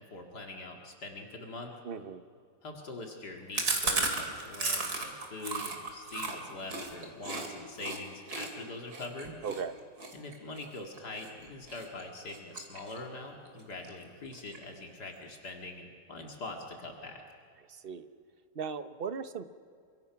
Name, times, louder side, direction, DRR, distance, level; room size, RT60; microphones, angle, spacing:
voice 1, 0.1-1.7 2.6-9.3 10.1-17.2, left 2 dB, 75° left, 2 dB, 2.8 m, -43 dB
voice 2, 1.8-2.2 9.4-9.8 17.7-18.1 18.5-19.4, right 6 dB, 40° right, 11 dB, 1.0 m, -37 dB
Chewing mastication, 3.5-7.5 7.8-8.0 8.3-11.3 11.7-12.0 12.3-13.2 13.5-13.6 13.8-13.9 14.2-14.8, right 3 dB, 70° right, 3.3 m, -34 dB
29.0 x 24.0 x 5.9 m, 2.2 s
omnidirectional pair, 1.7 m